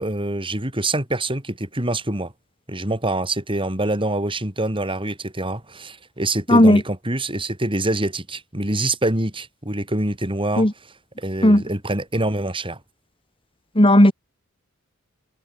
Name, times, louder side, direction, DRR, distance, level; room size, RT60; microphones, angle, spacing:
voice 1, 0.0-2.3 2.7-12.8, right 2 dB, 25° right, 5.3 m, -25 dB
voice 2, 6.5-6.8 10.6-10.7 11.4-11.6 13.8-14.1, left 1 dB, 25° left, 3.7 m, -13 dB
head